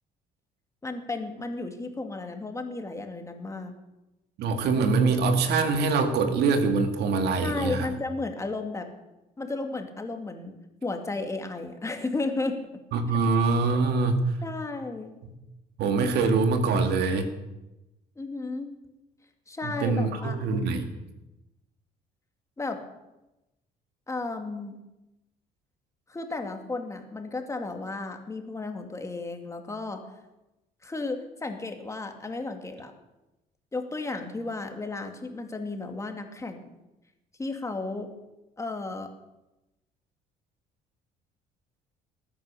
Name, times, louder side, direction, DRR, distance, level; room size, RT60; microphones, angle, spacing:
voice 1, 0.8-3.7 7.4-8.9 9.4-10.5 10.8-12.6 14.4-15.1 18.2-18.7 19.5-20.4 22.6-22.8 24.1-24.8 26.1-30.1 30.8-32.9 33.7-36.6 37.4-38.1 38.6-39.1, left 3 dB, 15° left, 5 dB, 2.2 m, -33 dB
voice 2, 4.4-7.9 12.9-14.2 15.8-17.3 19.6-20.9, right 4 dB, 75° right, 6 dB, 2.1 m, -24 dB
19.5 x 9.7 x 6.9 m, 0.98 s
cardioid pair, 110°, 17 cm